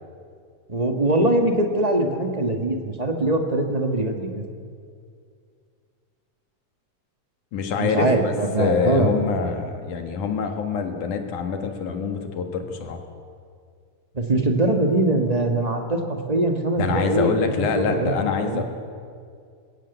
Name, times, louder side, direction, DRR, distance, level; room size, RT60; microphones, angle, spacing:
voice 1, 0.7-4.4 7.8-9.1 14.1-18.6, right 2 dB, 35° right, 4 dB, 0.6 m, -22 dB
voice 2, 7.5-13.0 16.8-18.6, left 5 dB, 85° left, 5 dB, 3.2 m, -25 dB
21.0 x 17.0 x 8.1 m, 2.2 s
omnidirectional pair, 3.4 m